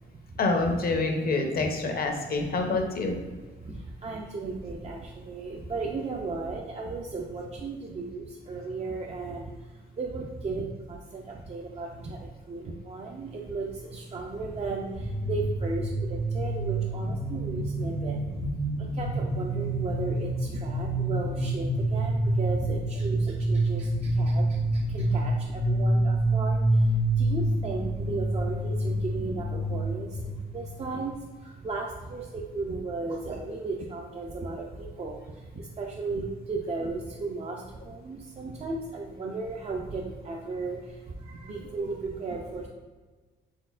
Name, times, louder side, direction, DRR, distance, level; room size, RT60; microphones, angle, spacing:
voice 1, 0.4-3.2 29.6-29.7 33.4-33.5, left 3 dB, 50° left, 4 dB, 0.7 m, -27 dB
voice 2, 3.6-18.5 18.8-42.7, right 3 dB, 35° right, -1 dB, 0.4 m, -35 dB
sound 1, 15.0-30.9, right 1 dB, 85° right, 1.2 m, -27 dB
4.2 x 3.5 x 2.4 m, 1.3 s
cardioid pair, 90°, 20 cm